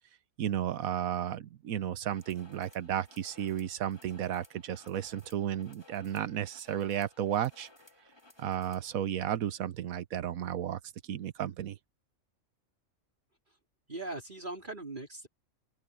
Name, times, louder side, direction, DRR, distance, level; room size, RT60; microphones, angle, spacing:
voice 1, 0.4-7.7 8.4-10.8 11.1-11.8, right 10 dB, 80° right, 1.3 m, -33 dB
sound 1, 2.1-8.9, left 2 dB, 20° left, 1.6 m, -59 dB
voice 2, 13.9-15.3, right 2 dB, 35° right, 3.5 m, -40 dB
open air
omnidirectional pair, 1.5 m